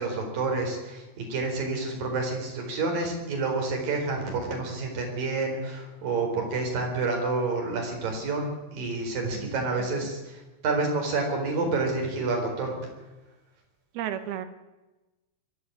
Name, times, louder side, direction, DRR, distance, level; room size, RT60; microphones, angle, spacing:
voice 1, 0.0-12.7, right 3 dB, 55° right, 2 dB, 5.7 m, -29 dB
voice 2, 13.9-14.5, right 11 dB, 70° right, 10 dB, 2.9 m, -33 dB
22.0 x 12.5 x 9.8 m, 1.1 s
omnidirectional pair, 5.0 m